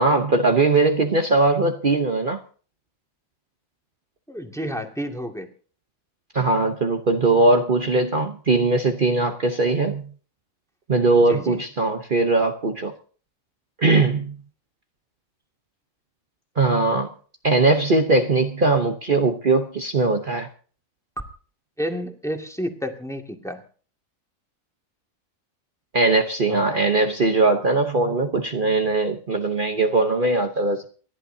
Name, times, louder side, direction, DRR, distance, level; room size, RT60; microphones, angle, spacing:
voice 1, 0.0-2.4 6.3-10.0 10.9-12.9 13.8-14.3 16.6-17.1 17.4-20.5 25.9-30.9, right 3 dB, 40° right, 5 dB, 1.1 m, -20 dB
voice 2, 4.3-5.5 11.3-11.6 21.8-23.6 26.5-26.8, equal, ahead, 3 dB, 2.1 m, -30 dB
29.0 x 11.0 x 2.8 m, 0.41 s
omnidirectional pair, 1.5 m